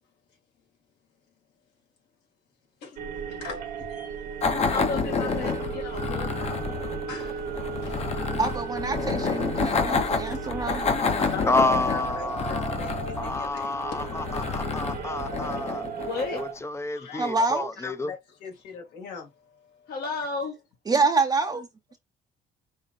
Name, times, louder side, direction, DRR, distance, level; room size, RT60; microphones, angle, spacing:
voice 1, 2.8-4.6 5.5-8.4 9.5-10.8 11.1-13.7 14.6-14.7 16.9-17.5 17.8-19.9, left 5 dB, 85° left, 2.5 m, -42 dB
sound 1, 3.0-16.5, right 7 dB, 65° right, 1.2 m, -36 dB
sound 2, 4.4-16.6, left 5 dB, 40° left, 0.9 m, -29 dB
voice 2, 4.7-6.8 15.9-16.4 19.9-20.6, left 4 dB, 65° left, 1.4 m, -34 dB
voice 3, 8.4-10.8 17.2-17.7 20.9-21.7, right 3 dB, 25° right, 0.7 m, -26 dB
voice 4, 11.5-12.8 13.2-15.9 16.3-18.1, left 2 dB, 15° left, 0.5 m, -29 dB
5.3 x 3.1 x 2.5 m
cardioid pair, 110°, 17 cm